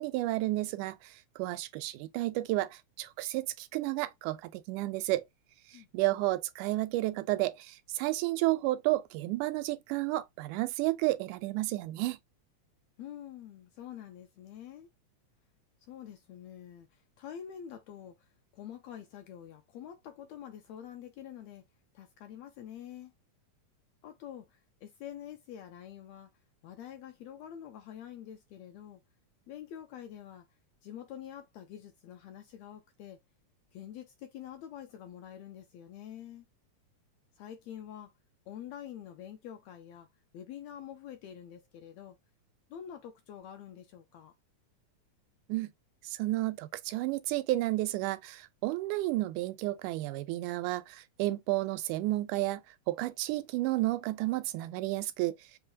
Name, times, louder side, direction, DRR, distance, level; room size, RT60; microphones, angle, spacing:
voice 1, 0.0-5.3 5.9-12.2 45.5-45.7 46.0-52.6 52.9-55.4, right 18 dB, 85° right, 2.0 m, -31 dB
voice 2, 5.7-6.2 13.0-14.9 15.8-21.6 21.9-23.1 24.0-26.3 26.6-29.0 29.5-30.5 30.8-33.2 33.7-36.4 37.4-38.1 38.5-40.1 40.3-42.2 42.7-44.3, left 10 dB, 80° left, 1.6 m, -46 dB
5.5 x 2.2 x 2.6 m
omnidirectional pair, 3.5 m